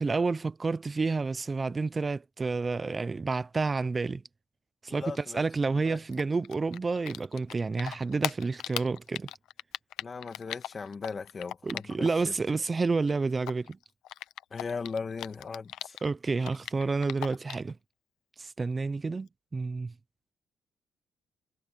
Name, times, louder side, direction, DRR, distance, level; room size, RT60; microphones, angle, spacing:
voice 1, 0.0-4.2 4.8-9.3 11.6-13.8 16.0-17.8 18.4-19.9, right 4 dB, 30° right, 0.6 m, -30 dB
voice 2, 4.9-5.4 5.9-6.0 10.0-12.3 14.5-16.0, left 5 dB, 35° left, 2.0 m, -38 dB
Typing, 6.1-7.5 7.8-12.3 12.5-16.1 16.4-17.7, left 13 dB, 90° left, 0.9 m, -38 dB
cardioid pair, 90°, 0 cm